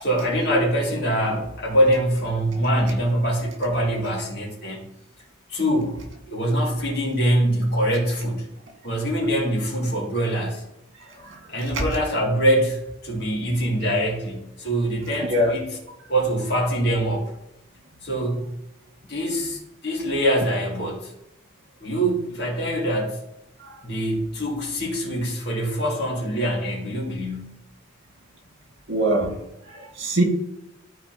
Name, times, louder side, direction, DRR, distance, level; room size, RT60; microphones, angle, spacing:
voice 1, 0.0-4.8 5.5-6.0 6.3-8.4 8.8-10.6 11.5-15.7 16.1-17.3 18.0-18.5 19.0-21.1 21.8-23.2 23.8-27.7, right 1 dB, 55° left, -3 dB, 2.5 m, -24 dB
voice 2, 11.0-11.8 15.2-15.5 23.6-23.8 28.9-29.3 29.7-30.2, right 1 dB, 75° right, 0 dB, 2.2 m, -24 dB
13.0 x 4.5 x 3.0 m, 0.89 s
head